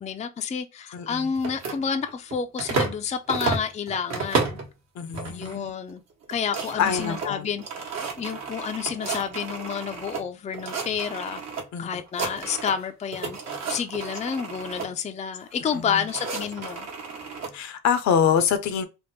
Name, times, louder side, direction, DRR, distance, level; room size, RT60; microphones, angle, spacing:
voice 1, 0.0-4.6 5.3-6.0 6.3-11.4 11.8-13.4 13.7-16.9, left 7 dB, 25° left, 0.4 m, -30 dB
voice 2, 0.9-1.3 4.9-5.7 6.7-7.5 11.7-11.9 15.7-16.1 17.5-18.9, left 7 dB, 65° left, 0.6 m, -25 dB
sound 1, 1.4-3.0 3.3-4.7 5.1-5.6 5.9-6.0 6.2-10.2 10.5-11.6 11.9-12.8 13.1-14.9 15.7-17.5, right 4 dB, 60° right, 1.1 m, -32 dB
3.4 x 2.1 x 2.9 m
cardioid pair, 90°, 30 cm